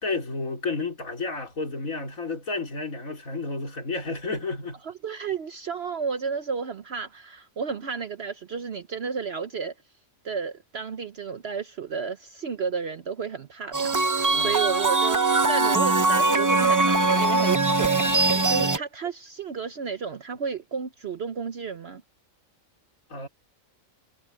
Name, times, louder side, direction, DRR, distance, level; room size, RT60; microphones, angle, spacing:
voice 1, 0.0-4.8 14.3-14.6 23.1-23.3, left 3 dB, 80° left, 4.0 m, -31 dB
voice 2, 4.8-9.7 10.2-18.1 18.5-22.0, right 6 dB, 55° right, 1.0 m, -32 dB
sound 1, 13.7-18.8, right 3 dB, 25° right, 0.4 m, -21 dB
omnidirectional pair, 1.4 m